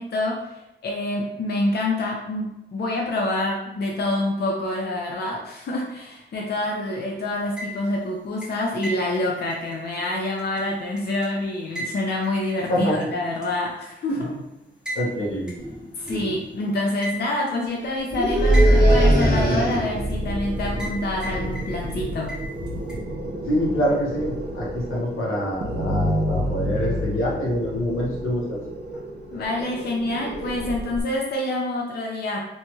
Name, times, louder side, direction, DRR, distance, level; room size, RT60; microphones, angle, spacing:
voice 1, 0.0-14.3 16.0-22.3 29.3-32.5, left 2 dB, 55° left, -1 dB, 0.5 m, -27 dB
sound 1, 7.4-8.0 8.4-11.3 11.8-13.0 13.4-13.5 14.9-15.1 15.5-15.6 16.1-16.2 17.0-17.6 18.5-18.9 19.2-20.1 20.8-21.0 21.2-22.0 22.3-23.0, equal, 5° right, 0.8 m, -35 dB
voice 2, 15.0-15.5 23.5-28.6, equal, 85° left, -4 dB, 0.8 m, -25 dB
sound 2, 15.6-15.8 16.1-16.4 18.1-20.1, right 1 dB, 20° left, 1.1 m, -18 dB
sound 3, 18.7-31.0, equal, 55° right, 0.6 m, -30 dB
2.9 x 2.7 x 2.3 m, 0.91 s
wide cardioid pair, 105°, 21 cm